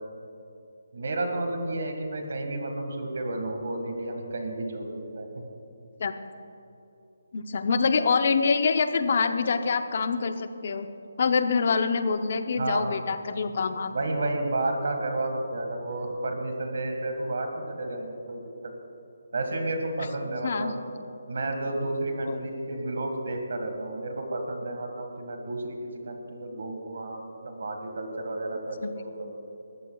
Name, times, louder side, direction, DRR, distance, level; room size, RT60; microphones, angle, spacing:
voice 1, 0.9-5.4 12.6-13.0 13.9-18.4 19.3-20.7 21.3-29.4, right 2 dB, 60° right, 4 dB, 1.7 m, -31 dB
voice 2, 7.3-10.9 11.2-13.9 20.4-20.7 22.2-22.5 28.8-28.9, left 5 dB, 40° left, 9 dB, 0.7 m, -25 dB
20.5 x 14.0 x 2.3 m, 2.9 s
hypercardioid pair, 175°, 0 cm